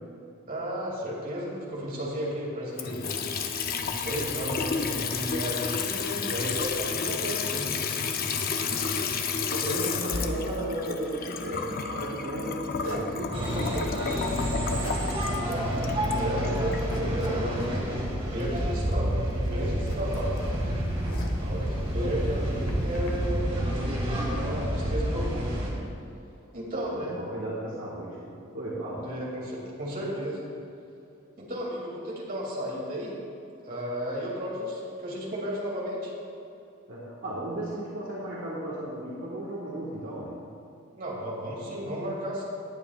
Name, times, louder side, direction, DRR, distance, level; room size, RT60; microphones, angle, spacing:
voice 1, 0.5-3.0 3.8-7.7 13.5-14.2 15.7-15.8 16.2-20.4 21.4-23.6 24.2-25.6 26.5-27.2 29.0-30.4 31.4-33.2 33.6-36.1 41.0-42.4, equal, 40° right, -4 dB, 2.7 m, -33 dB
Water tap faucet / Sink (filling or washing) / Trickle dribble, 2.7-16.8, left 5 dB, 45° left, 0.6 m, -31 dB
voice 2, 8.6-9.0 9.5-13.6 26.8-29.1 36.9-40.4, right 1 dB, 70° right, -6 dB, 1.7 m, -35 dB
Zipper (clothing), 12.8-13.2 13.9-14.5 14.8-15.1 15.4-15.5 15.9-16.3 16.6-17.7 18.4-19.0 19.3-21.5 22.1-23.1, left 2 dB, 75° left, 1.4 m, -43 dB
sound 1, 13.3-25.7, equal, 25° right, 1.9 m, -29 dB
18.5 x 9.0 x 2.5 m, 2.7 s
head